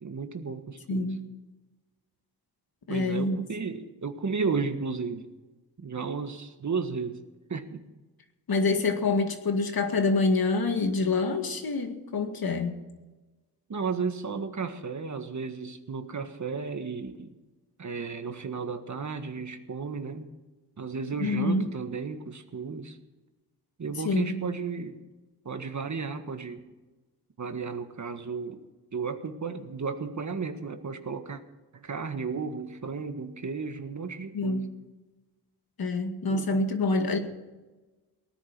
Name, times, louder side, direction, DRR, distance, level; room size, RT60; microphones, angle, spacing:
voice 1, 0.0-1.2 2.9-5.3 5.8-7.2 7.5-7.8 13.7-17.3 17.8-20.3 20.8-23.0 23.8-25.0 25.4-26.6 27.4-28.6 28.9-31.4 31.7-34.7 36.3-36.7, right 5 dB, 45° right, 8 dB, 1.6 m, -34 dB
voice 2, 0.9-1.2 2.9-3.4 8.5-12.8 21.2-21.6 24.0-24.4 34.3-34.6 35.8-37.2, left 3 dB, 60° left, 6 dB, 2.1 m, -26 dB
18.5 x 10.0 x 6.1 m, 1.1 s
cardioid pair, 65°, 42 cm